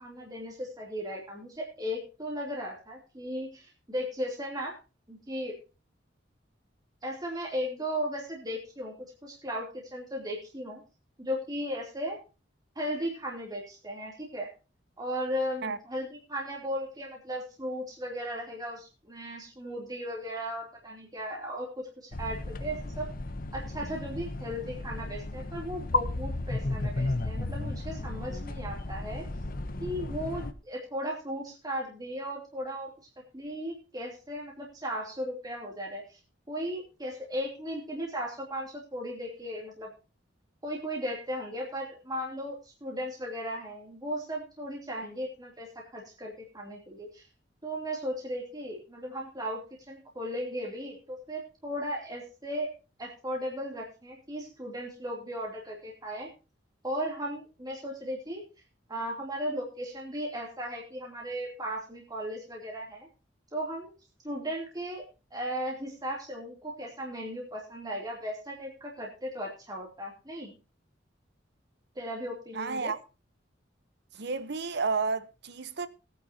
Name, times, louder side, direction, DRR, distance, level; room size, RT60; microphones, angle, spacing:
voice 1, 0.0-4.8 5.1-5.5 7.0-8.9 9.2-10.8 11.2-12.2 12.7-14.5 15.0-23.1 23.5-29.3 29.8-32.9 33.3-36.2 36.5-39.9 40.6-47.2 47.6-49.6 49.9-52.7 53.0-56.3 56.8-58.4 58.9-63.1 63.5-63.9 64.2-65.0 65.3-70.5 71.9-72.9, equal, 20° right, 2.9 m, -36 dB
sound 1, 22.1-30.5, left 2 dB, 50° left, 0.9 m, -34 dB
voice 2, 72.5-73.0 74.2-75.9, right 4 dB, 65° right, 1.0 m, -31 dB
19.5 x 9.5 x 2.8 m
head